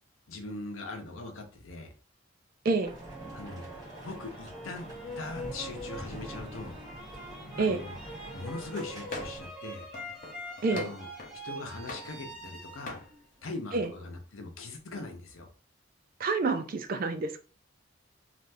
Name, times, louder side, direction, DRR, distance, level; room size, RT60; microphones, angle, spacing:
voice 1, 0.3-1.9 3.3-6.8 7.6-8.0 8.3-9.9 10.7-11.1 11.4-13.0 13.4-15.5, left 2 dB, 75° left, 0.7 m, -41 dB
sound 1, 2.8-9.5, right 1 dB, 20° right, 1.4 m, -45 dB
sound 2, 3.0-14.0, equal, 5° right, 0.9 m, -44 dB
sound 3, 9.1-9.5 9.9-11.4 11.9-12.6 12.9-13.1, left 3 dB, 40° left, 0.7 m, -42 dB
voice 2, 16.2-17.4, right 3 dB, 45° right, 0.3 m, -28 dB
3.3 x 2.5 x 2.6 m
head